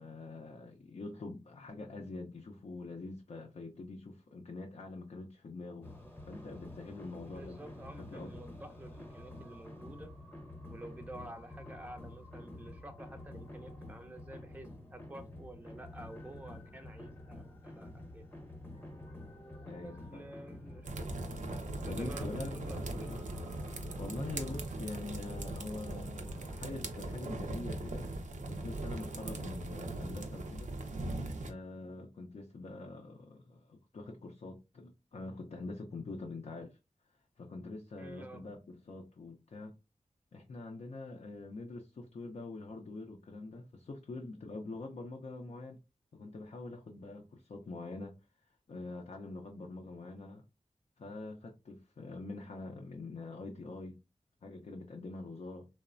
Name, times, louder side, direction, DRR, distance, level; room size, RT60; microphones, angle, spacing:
voice 1, 0.0-5.9 6.3-8.3 19.6-20.2 21.9-23.2 23.9-28.2 28.5-30.7 31.5-36.8 37.4-39.7 40.3-45.8 46.1-48.2 48.7-50.4 51.0-53.9 54.4-55.7, left 3 dB, 60° left, 0.4 m, -45 dB
sound 1, 5.8-24.7, left 1 dB, 15° left, 0.7 m, -49 dB
voice 2, 7.3-10.1 10.7-18.3 19.8-20.9 21.8-23.2 38.0-38.5, right 1 dB, 10° right, 0.4 m, -50 dB
sound 2, 18.7-26.5, equal, 90° left, 0.8 m, -59 dB
sound 3, 20.8-31.5, right 2 dB, 80° right, 0.5 m, -40 dB
3.0 x 2.0 x 2.4 m
wide cardioid pair, 60°, 12 cm